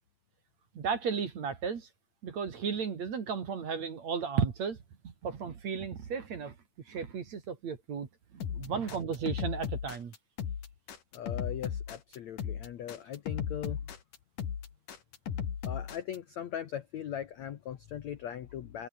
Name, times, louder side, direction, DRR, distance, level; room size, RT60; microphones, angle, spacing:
voice 1, 0.7-1.9 2.2-4.8 5.0-6.5 6.9-8.1 8.3-10.1, right 6 dB, 45° right, 3.1 m, -34 dB
voice 2, 8.4-8.8 11.1-13.9 15.6-18.9, left 10 dB, 75° left, 1.6 m, -40 dB
sound 1, 8.4-16.2, left 8 dB, 50° left, 3.9 m, -36 dB
omnidirectional pair, 5.2 m